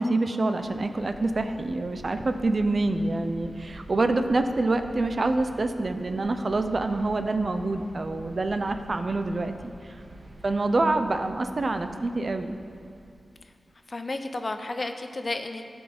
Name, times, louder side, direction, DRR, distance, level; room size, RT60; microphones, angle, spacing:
voice 1, 0.0-10.0 10.4-12.6, right 2 dB, 50° right, 8 dB, 0.5 m, -26 dB
sound 1, 0.6-13.1, right 1 dB, 70° right, 1.3 m, -47 dB
voice 2, 13.9-15.6, left 2 dB, 45° left, 7 dB, 0.6 m, -32 dB
13.0 x 4.4 x 5.9 m, 2.4 s
wide cardioid pair, 70°, 0 cm